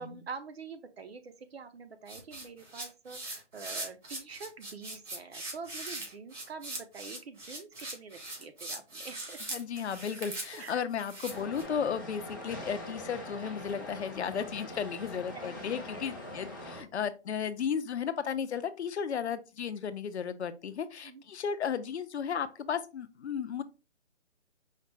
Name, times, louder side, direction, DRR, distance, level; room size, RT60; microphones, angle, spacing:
voice 1, 0.0-9.4 10.5-10.8 15.3-16.1 21.0-21.2, right 5 dB, 60° right, 9 dB, 0.7 m, -46 dB
sound 1, 2.1-11.6, right 2 dB, 80° right, 2.1 m, -41 dB
voice 2, 9.5-23.6, left 7 dB, 65° left, 12 dB, 0.6 m, -34 dB
sound 2, 11.3-16.8, left 1 dB, 20° left, 0.5 m, -43 dB
4.8 x 2.1 x 3.3 m, 0.30 s
hypercardioid pair, 165°, 36 cm